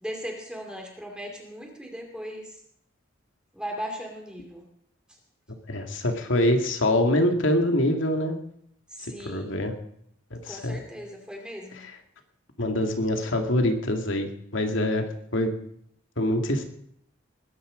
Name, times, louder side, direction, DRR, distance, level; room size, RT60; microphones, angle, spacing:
voice 1, 0.0-2.5 3.5-4.6 8.9-9.5 10.5-11.8, equal, 5° right, 1 dB, 2.6 m, -37 dB
voice 2, 5.7-8.4 9.0-9.7 10.3-10.8 11.7-11.9 12.6-15.0 15.3-15.5 16.2-16.6, left 1 dB, 70° left, 4 dB, 2.3 m, -25 dB
20.5 x 10.5 x 5.2 m, 0.72 s
head